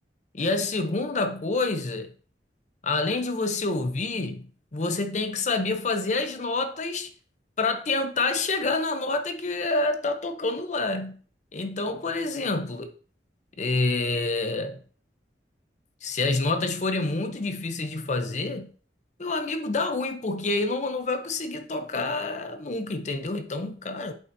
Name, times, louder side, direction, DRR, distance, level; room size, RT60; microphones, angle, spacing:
voice 1, 0.3-2.1 2.8-7.1 7.6-11.2 11.5-12.9 13.6-14.8 16.0-18.7 19.2-24.2, left 3 dB, 45° left, 0.7 m, -27 dB
7.8 x 5.3 x 2.7 m
head